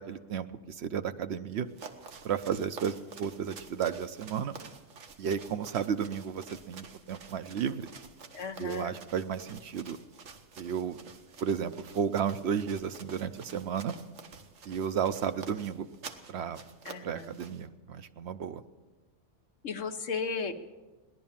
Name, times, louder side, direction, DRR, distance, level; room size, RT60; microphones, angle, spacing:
voice 1, 0.0-1.7 2.2-4.6 5.2-7.9 8.6-10.0 10.6-11.0 11.4-13.9 14.7-15.9 16.3-16.6 17.0-18.6, right 7 dB, 65° right, 11 dB, 0.9 m, -33 dB
sound 1, 1.7-17.7, right 5 dB, 85° right, 1.5 m, -49 dB
voice 2, 8.3-8.9 16.8-17.4 19.6-20.5, left 5 dB, 75° left, 5 dB, 1.2 m, -35 dB
17.5 x 11.0 x 7.2 m, 1.2 s
omnidirectional pair, 1.3 m